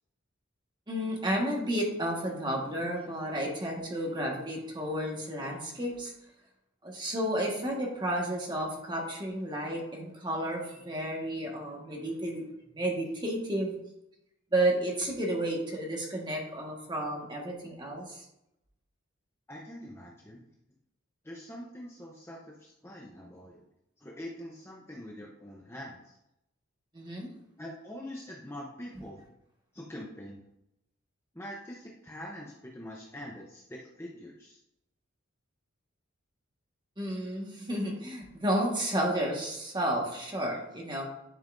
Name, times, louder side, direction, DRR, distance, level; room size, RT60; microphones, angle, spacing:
voice 1, 0.9-6.1 6.8-12.4 12.7-13.7 14.5-18.2 26.9-27.3 37.0-41.1, right 1 dB, 20° right, -1 dB, 1.5 m, -32 dB
voice 2, 19.5-20.4 21.2-23.6 24.0-26.2 27.6-29.3 29.7-30.4 31.3-34.6, equal, 10° left, -3 dB, 0.8 m, -44 dB
10.5 x 5.6 x 2.6 m, 0.83 s
head